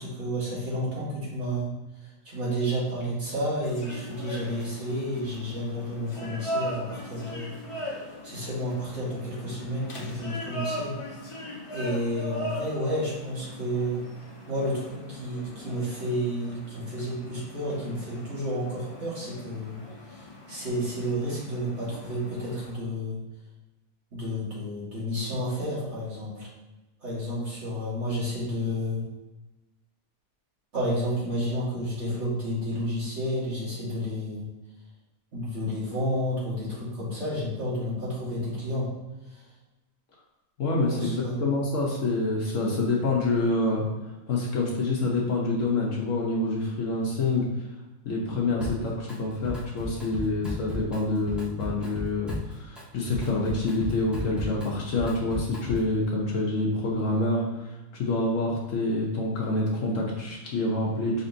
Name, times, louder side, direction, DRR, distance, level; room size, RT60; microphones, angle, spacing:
voice 1, 0.0-1.7 2.3-7.5 8.2-11.0 11.7-14.0 14.5-19.8 20.1-23.2 24.1-26.5 27.0-29.0 30.7-34.5 35.3-38.9 39.3-39.4 40.9-41.4, equal, 55° right, -7 dB, 1.9 m, -31 dB
sound 1, 3.6-22.7, left 1 dB, 45° left, 0.4 m, -39 dB
voice 2, 40.6-43.8 44.3-47.4 48.0-61.3, left 2 dB, 65° left, -2 dB, 1.1 m, -27 dB
Drum kit, 48.6-49.2 49.4-56.0, left 1 dB, ahead, 0.9 m, -36 dB
5.1 x 4.0 x 2.6 m, 1.1 s
omnidirectional pair, 1.5 m